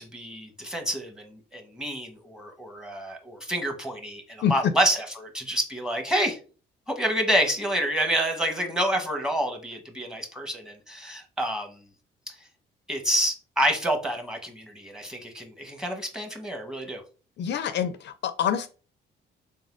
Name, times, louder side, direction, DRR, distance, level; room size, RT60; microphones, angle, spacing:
voice 1, 0.0-6.4 7.0-11.8 12.3-12.4 12.9-17.0, equal, 5° right, 4 dB, 1.0 m, -28 dB
voice 2, 17.4-18.7, left 8 dB, 60° left, 11 dB, 0.4 m, -26 dB
4.0 x 3.6 x 2.5 m, 0.36 s
cardioid pair, 90°, 20 cm